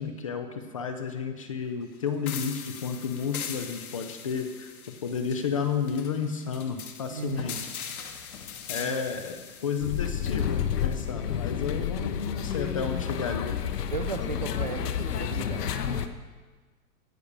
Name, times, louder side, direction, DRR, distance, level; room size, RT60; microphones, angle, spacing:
voice 1, 0.0-4.7 5.0-7.7 8.7-13.6, left 6 dB, 20° left, 7 dB, 0.6 m, -32 dB
sound 1, 2.3-11.1, left 8 dB, 65° left, 1.8 m, -41 dB
voice 2, 7.1-7.7 8.8-9.0 13.9-15.7, right 6 dB, 30° right, 7 dB, 0.5 m, -36 dB
sound 2, 9.8-16.1, left 9 dB, 90° left, 1.4 m, -30 dB
16.0 x 10.0 x 6.6 m, 1.4 s
hypercardioid pair, 175°, 46 cm